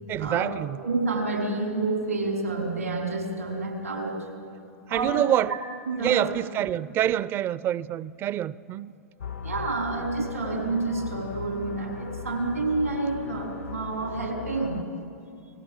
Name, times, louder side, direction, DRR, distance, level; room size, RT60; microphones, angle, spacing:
voice 1, 0.1-0.8 4.9-5.6 6.0-8.9, right 12 dB, 30° right, 0.5 m, -26 dB
voice 2, 0.8-4.1 4.9-5.6 5.9-6.3 9.4-14.8, right 3 dB, 90° right, 4.6 m, -29 dB
sound 1, 9.2-14.8, left 7 dB, 80° left, 1.2 m, -39 dB
29.5 x 18.5 x 7.2 m
figure-of-eight pair, 105°, 8 cm